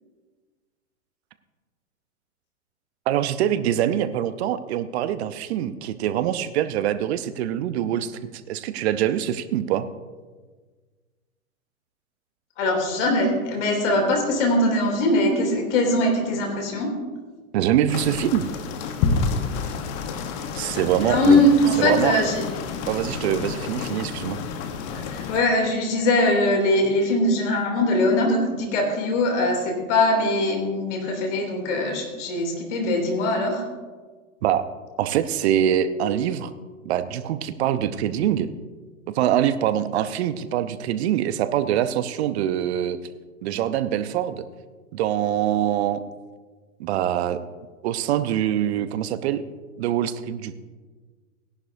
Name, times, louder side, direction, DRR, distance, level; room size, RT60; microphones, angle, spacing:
voice 1, 3.1-8.2 8.5-9.9 17.5-18.5 20.5-21.5 21.8-22.2 22.9-24.4 34.4-34.7 35.0-36.5 36.8-38.5 39.1-43.0 43.4-44.4 44.9-46.0 46.8-47.4 47.8-49.4 49.8-50.6, right 11 dB, 50° right, 12 dB, 0.8 m, -24 dB
voice 2, 12.6-16.9 21.0-22.4 24.9-33.7, left 1 dB, 55° left, 2 dB, 2.9 m, -21 dB
sound 1, 17.9-25.4, left 5 dB, 35° left, 1.1 m, -29 dB
17.0 x 11.0 x 2.7 m, 1.4 s
hypercardioid pair, 120°, 43 cm